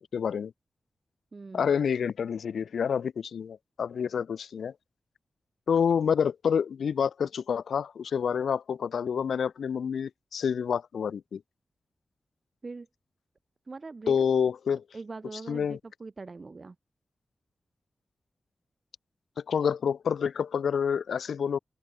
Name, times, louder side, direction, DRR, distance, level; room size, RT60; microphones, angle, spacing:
voice 1, 0.1-0.5 1.5-4.7 5.7-11.4 14.1-14.8 15.5-15.8 19.5-21.6, left 7 dB, 90° left, 0.4 m, -28 dB
voice 2, 1.3-1.8 12.6-12.9 13.7-14.3 14.9-16.8, right 3 dB, 50° right, 3.2 m, -42 dB
open air
cardioid pair, 55°, 0 cm